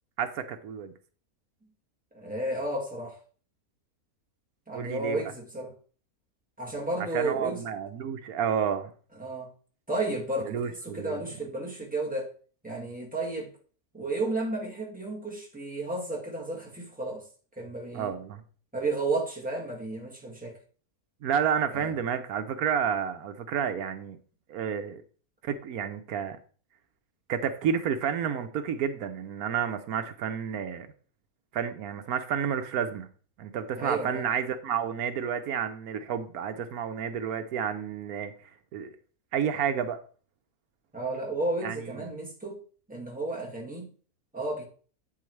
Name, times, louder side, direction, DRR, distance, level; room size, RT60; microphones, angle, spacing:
voice 1, 0.2-0.9 4.7-5.2 7.1-8.9 10.5-11.2 17.9-18.4 21.2-24.2 24.5-25.0 25.4-26.4 27.3-30.9 31.5-33.1 33.4-38.3 38.7-38.9 39.3-40.0 41.6-41.8, right 8 dB, 80° right, 1.2 m, -30 dB
voice 2, 2.1-3.2 4.7-5.7 6.6-7.7 9.2-9.5 9.9-12.3 12.6-13.5 13.9-17.2 17.6-18.1 18.7-20.6 21.7-21.9 33.8-34.3 40.9-42.6 42.9-43.9 44.3-44.6, right 2 dB, 5° right, 1.9 m, -32 dB
8.5 x 8.4 x 3.2 m
omnidirectional pair, 1.6 m